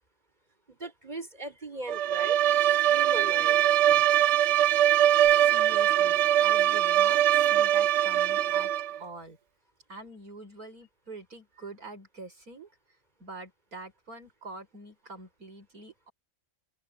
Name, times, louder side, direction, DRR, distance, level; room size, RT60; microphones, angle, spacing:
voice 1, 0.7-2.4 2.6-3.6, right 2 dB, 30° right, 6.5 m, -39 dB
Bowed string instrument, 1.9-9.0, right 12 dB, 65° right, 0.7 m, -22 dB
voice 2, 5.3-8.7 9.0-9.4 9.9-12.7 13.2-16.1, right 2 dB, 85° right, 6.2 m, -45 dB
open air
omnidirectional pair, 1.5 m